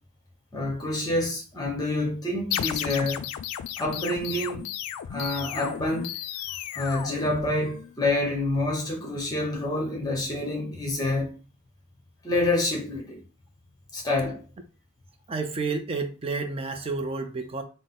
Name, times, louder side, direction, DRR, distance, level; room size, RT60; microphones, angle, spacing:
voice 1, 0.5-3.3 3.8-4.7 5.1-6.1 6.7-11.3 12.2-13.2 13.9-14.4, left 2 dB, 15° left, 1.0 m, -27 dB
sound 1, 2.5-7.9, left 11 dB, 80° left, 0.3 m, -34 dB
voice 2, 15.3-17.6, right 4 dB, 25° right, 0.4 m, -30 dB
3.8 x 2.0 x 3.8 m
head